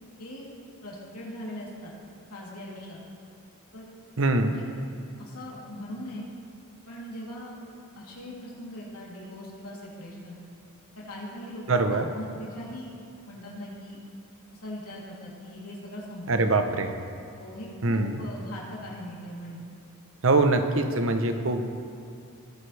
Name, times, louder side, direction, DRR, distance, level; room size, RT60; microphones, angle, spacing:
voice 1, 0.8-1.9 2.3-3.0 3.7-3.9 4.5-4.6 5.2-6.2 6.9-7.6 7.9-10.4 10.9-12.9 13.3-14.0 14.6-16.5 17.4-19.6, left 1 dB, 85° left, -5 dB, 3.2 m, -40 dB
voice 2, 4.2-4.5 11.7-12.1 16.3-16.9 17.8-18.2 20.2-21.6, right 2 dB, 60° right, 7 dB, 0.9 m, -23 dB
19.5 x 9.4 x 3.4 m, 2.5 s
head